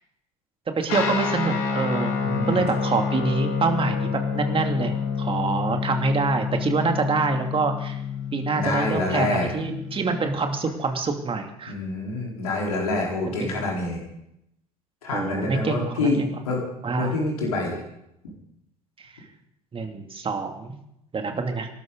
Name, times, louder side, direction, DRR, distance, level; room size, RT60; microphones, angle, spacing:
voice 1, 0.7-2.2 2.5-8.0 8.3-11.7 13.4-13.5 15.1-16.3 16.8-17.1 19.7-20.7 21.1-21.7, right 4 dB, 30° right, 5 dB, 2.7 m, -26 dB
Guitar, 0.9-10.7, left 6 dB, 60° left, 3.9 m, -28 dB
voice 2, 2.2-2.7 8.5-9.5 11.7-14.0 15.0-16.2 16.4-16.6 17.0-17.8, left 2 dB, 75° left, -2 dB, 4.3 m, -26 dB
26.0 x 12.5 x 4.0 m, 0.78 s
figure-of-eight pair, 65°, 19 cm